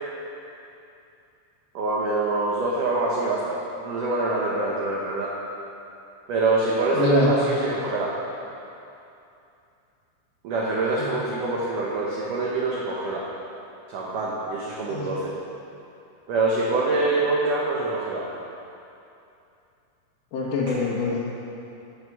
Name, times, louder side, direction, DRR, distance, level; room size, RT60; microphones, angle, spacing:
voice 1, 1.7-5.3 6.3-8.1 10.4-13.3 13.9-15.3 16.3-18.2, right 2 dB, 85° right, -4 dB, 1.8 m, -25 dB
voice 2, 6.9-7.3 11.0-11.1 14.9-15.0 20.3-21.2, left 3 dB, 60° left, -6 dB, 2.3 m, -24 dB
13.5 x 6.7 x 6.1 m, 2.7 s
omnidirectional pair, 5.4 m